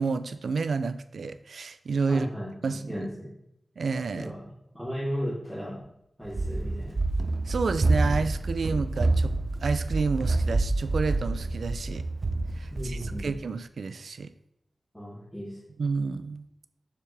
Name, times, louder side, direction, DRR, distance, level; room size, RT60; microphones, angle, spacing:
voice 1, 0.0-2.3 2.6-3.1 3.8-4.3 7.5-9.3 9.6-12.1 12.6-14.3 15.8-16.5, right 4 dB, 90° right, 12 dB, 0.4 m, -30 dB
voice 2, 2.1-3.3 4.1-4.4 4.7-5.8 6.2-7.0 12.7-13.3 14.9-15.6, equal, 10° left, -11 dB, 2.9 m, -35 dB
Run, 6.3-13.3, right 2 dB, 45° right, 0.7 m, -27 dB
7.3 x 6.7 x 3.4 m, 0.80 s
wide cardioid pair, 85°, 0 cm